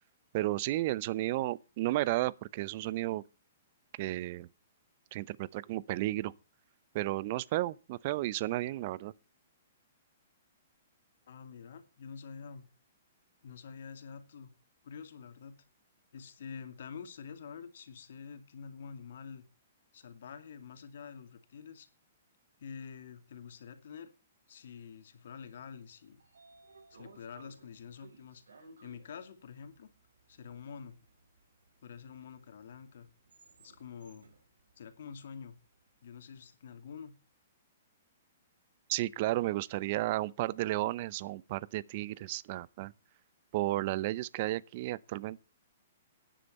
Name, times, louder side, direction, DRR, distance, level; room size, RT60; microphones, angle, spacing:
voice 1, 0.3-3.2 4.0-4.5 5.1-6.3 6.9-9.1 38.9-42.9 43.5-45.4, right 17 dB, 45° right, 0.7 m, -33 dB
voice 2, 11.3-12.7 13.4-14.5 14.8-15.6 16.1-19.4 19.9-21.9 22.6-24.1 24.5-26.2 26.9-29.9 30.3-30.9 31.8-33.1 33.6-34.3 34.8-35.5 36.0-37.1, left 6 dB, 65° left, 2.4 m, -47 dB
Train / Sliding door, 25.8-35.9, right 3 dB, 75° right, 4.5 m, -61 dB
12.0 x 10.5 x 4.3 m
hypercardioid pair, 120°, 0 cm